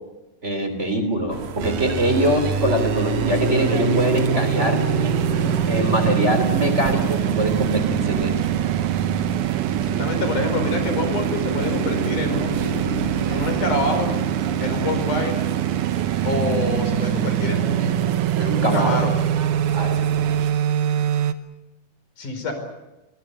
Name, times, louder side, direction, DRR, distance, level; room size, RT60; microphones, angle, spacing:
voice 1, 0.4-4.8 5.7-8.3 18.4-19.0 19.7-20.0, equal, 20° right, 7 dB, 3.4 m, -23 dB
sound 1, 1.2-18.3, left 5 dB, 50° left, 1.2 m, -34 dB
sound 2, 1.3-20.5, right 7 dB, 65° right, 2.5 m, -33 dB
sound 3, 1.6-21.3, right 10 dB, 80° right, 2.5 m, -23 dB
voice 2, 9.8-14.1 14.6-15.5 16.2-18.3 18.5-19.1 22.2-22.5, left 3 dB, 75° left, 6 dB, 6.3 m, -27 dB
25.0 x 21.0 x 8.4 m, 1.0 s
omnidirectional pair, 3.6 m